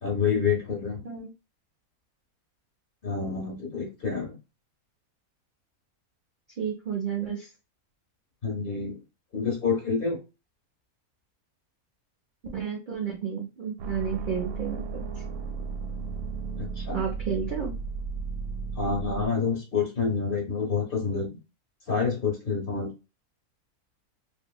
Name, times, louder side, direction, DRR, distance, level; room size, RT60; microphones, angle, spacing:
voice 1, 0.0-1.0 3.0-4.4 8.4-9.0 9.3-10.2 16.6-17.0 18.8-21.3 21.9-22.9, left 5 dB, 45° left, -1 dB, 0.9 m, -28 dB
voice 2, 6.6-7.5 12.4-15.0 16.9-17.7, right 7 dB, 65° right, -1 dB, 0.5 m, -31 dB
sound 1, 13.8-19.3, right 4 dB, 85° right, 1.1 m, -34 dB
2.8 x 2.6 x 2.3 m, 0.28 s
omnidirectional pair, 1.6 m